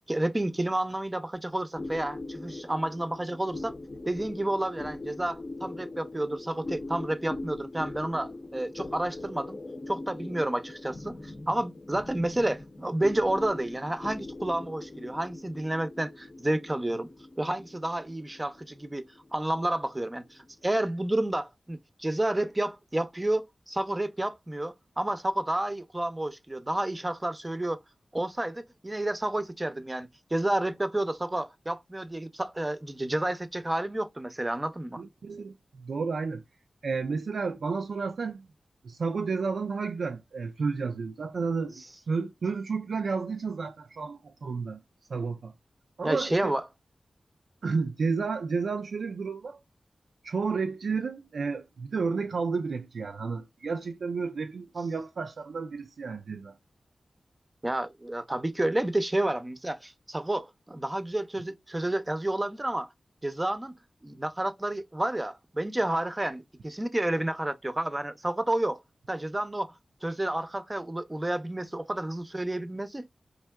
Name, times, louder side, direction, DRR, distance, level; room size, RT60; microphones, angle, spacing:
voice 1, 0.1-3.7 4.1-9.6 9.9-17.1 17.4-19.1 19.3-27.8 28.1-35.0 46.0-46.7 57.6-62.9 63.2-63.7 64.0-68.8 69.1-69.7 70.0-73.1, right 1 dB, 25° right, 0.5 m, -30 dB
sound 1, 1.7-20.5, left 2 dB, 45° left, 0.6 m, -41 dB
voice 2, 35.0-36.4 36.8-38.5 38.8-44.8 45.1-45.5 46.0-46.6 47.6-49.6 50.2-56.6, right 4 dB, 85° right, 0.3 m, -31 dB
4.4 x 2.6 x 2.2 m
cardioid pair, 55°, 0 cm